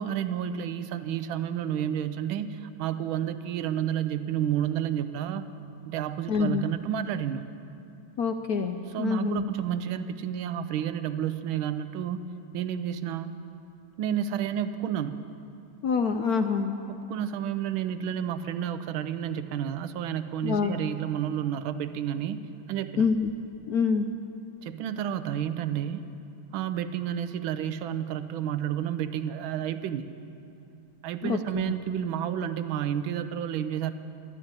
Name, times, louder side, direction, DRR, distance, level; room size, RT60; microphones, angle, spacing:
voice 1, 0.0-5.5 5.8-7.4 8.9-12.2 12.5-13.3 14.0-15.2 16.9-22.4 22.7-23.1 24.6-26.0 26.5-30.1 31.0-33.9, right 9 dB, 80° right, 11 dB, 1.4 m, -30 dB
voice 2, 6.3-6.7 8.2-9.5 15.8-16.8 20.4-20.7 23.0-23.3 23.7-24.1 31.2-31.7, left 5 dB, 65° left, 6 dB, 0.9 m, -26 dB
12.5 x 12.0 x 8.9 m, 2.7 s
omnidirectional pair, 2.2 m